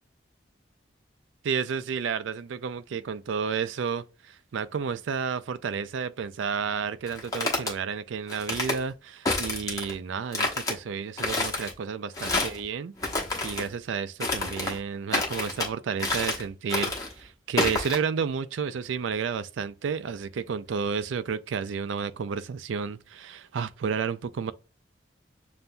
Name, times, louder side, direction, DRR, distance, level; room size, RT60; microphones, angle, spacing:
voice 1, 1.4-12.9 13.4-24.5, right 6 dB, 80° right, 0.4 m, -31 dB
sound 1, 7.1-7.7 8.3-8.8 9.3-9.9 10.3-10.7 11.2-11.7 12.1-12.6 13.0-13.7 14.2-14.8 15.1-15.7 16.0-16.4 16.7-17.1 17.6-18.0, left 2 dB, 20° left, 1.0 m, -28 dB
7.0 x 2.5 x 2.2 m
head